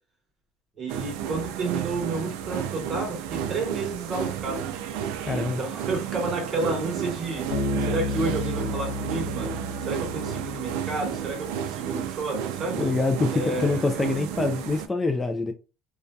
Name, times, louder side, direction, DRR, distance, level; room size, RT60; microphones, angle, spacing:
voice 1, 0.8-4.8 5.6-7.5 7.8-12.8 13.3-14.1, right 3 dB, 40° right, 1.0 m, -31 dB
sound 1, 0.9-14.9, right 8 dB, 90° right, 0.3 m, -32 dB
voice 2, 5.2-5.6 12.8-15.5, left 3 dB, 15° left, 0.3 m, -25 dB
Bass guitar, 7.5-11.0, left 2 dB, 80° left, 1.0 m, -31 dB
2.5 x 2.2 x 2.2 m
cardioid pair, 120°, 0 cm